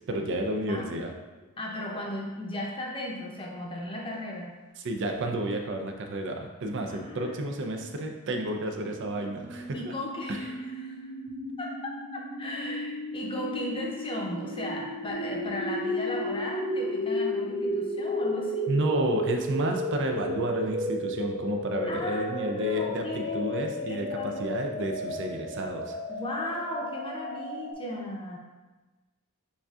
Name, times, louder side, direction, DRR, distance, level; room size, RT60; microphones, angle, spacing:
voice 1, 0.1-1.1 4.8-9.9 10.3-10.4 18.7-26.0, right 1 dB, 55° right, 3 dB, 0.5 m, -31 dB
voice 2, 1.6-4.5 6.9-7.9 9.7-10.9 11.6-18.7 21.9-24.4 26.1-28.4, left 1 dB, 25° left, -1 dB, 0.7 m, -36 dB
sound 1, 8.8-27.7, left 1 dB, 90° left, 0.7 m, -33 dB
7.1 x 2.6 x 2.4 m, 1.2 s
head